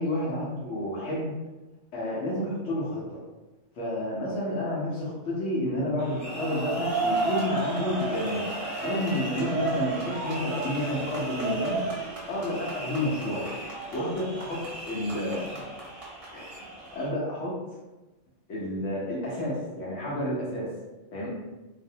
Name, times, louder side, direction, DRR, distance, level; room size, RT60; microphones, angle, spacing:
voice 1, 0.0-1.3 1.9-3.2 3.8-8.4 8.8-11.8 12.3-13.5 13.9-15.7 16.3-16.5 16.9-17.6 18.5-20.7 21.1-21.3, left 1 dB, 80° left, -6 dB, 1.0 m, -30 dB
sound 1, 6.0-17.1, right 3 dB, 40° right, 0.5 m, -33 dB
2.6 x 2.0 x 2.6 m, 1.1 s
omnidirectional pair, 1.3 m